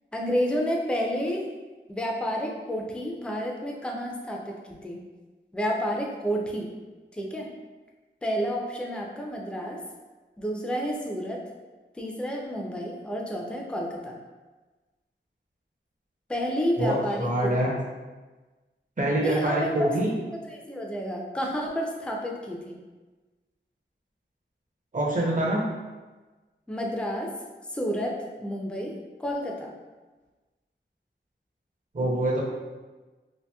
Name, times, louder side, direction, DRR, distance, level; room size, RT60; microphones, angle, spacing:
voice 1, 0.1-1.4 1.9-5.0 5.5-6.7 7.1-7.5 8.2-9.8 10.4-11.4 12.0-14.2 16.3-17.5 19.2-19.9 20.4-22.8 26.7-27.3 27.7-28.1 28.4-28.9 29.2-29.7, equal, 5° left, -1 dB, 0.4 m, -30 dB
voice 2, 16.8-17.7 19.0-20.1 24.9-25.6 31.9-32.4, right 1 dB, 40° right, -4 dB, 0.6 m, -25 dB
2.8 x 2.6 x 2.2 m, 1.2 s
wide cardioid pair, 60°, 20 cm